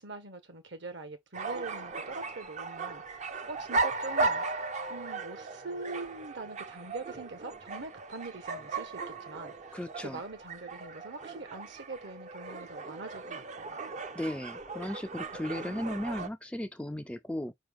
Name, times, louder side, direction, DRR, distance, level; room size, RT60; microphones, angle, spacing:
voice 1, 0.0-3.2 3.5-4.4 4.9-9.0 9.3-9.7 10.0-13.8, right 3 dB, 60° right, 1.3 m, -43 dB
sound 1, 1.3-16.3, right 3 dB, 35° right, 0.6 m, -37 dB
voice 2, 9.7-10.2 14.2-17.5, left 1 dB, 5° left, 0.3 m, -36 dB
4.9 x 3.0 x 3.6 m
head